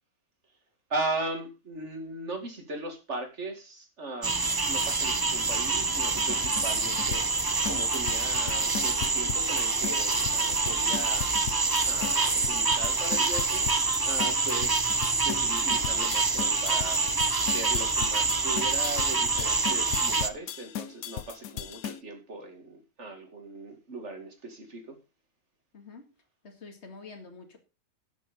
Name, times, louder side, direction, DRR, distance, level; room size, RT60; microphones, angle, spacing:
voice 1, 0.9-7.3 7.7-11.4 11.9-13.6 13.9-14.9 15.2-17.0 17.4-25.0, right 2 dB, 55° right, 4 dB, 2.6 m, -38 dB
sound 1, 4.2-20.3, right 3 dB, 25° right, 0.5 m, -26 dB
sound 2, 6.2-22.0, left 10 dB, 85° left, 1.2 m, -37 dB
voice 2, 25.7-26.0 26.4-27.6, left 4 dB, 50° left, 3 dB, 2.3 m, -46 dB
11.5 x 6.9 x 5.2 m, 0.31 s
omnidirectional pair, 1.5 m